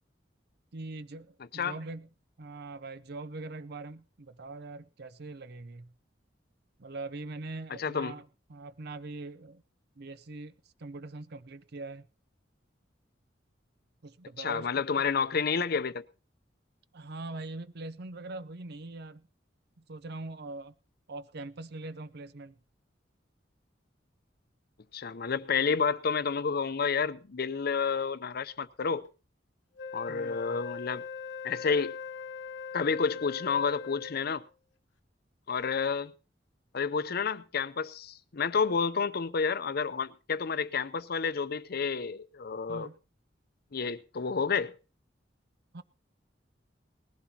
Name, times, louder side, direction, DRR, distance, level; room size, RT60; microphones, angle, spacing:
voice 1, 0.7-2.1 2.4-5.9 6.8-9.6 10.0-10.5 10.8-12.1 14.0-14.8 16.9-19.3 19.8-20.7 21.1-22.6 30.1-30.6 42.7-43.0 45.7-45.8, right 2 dB, 60° right, 0.6 m, -42 dB
voice 2, 7.8-8.1 14.4-16.0 24.9-29.1 29.9-31.0 31.4-32.0 32.7-34.4 35.5-36.1 36.7-42.9 43.7-44.7, left 5 dB, 55° left, 0.6 m, -30 dB
Wind instrument woodwind instrument, 29.8-34.5, left 6 dB, 80° left, 1.0 m, -41 dB
19.5 x 15.0 x 2.9 m
head